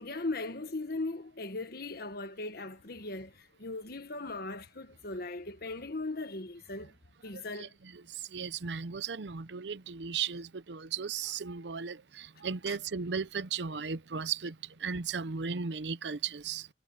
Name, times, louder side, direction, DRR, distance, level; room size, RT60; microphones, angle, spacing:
voice 1, 0.0-6.9 7.2-7.8 12.7-12.8, left 2 dB, 60° left, 1.6 m, -38 dB
voice 2, 7.3-16.7, right 6 dB, 75° right, 0.7 m, -36 dB
head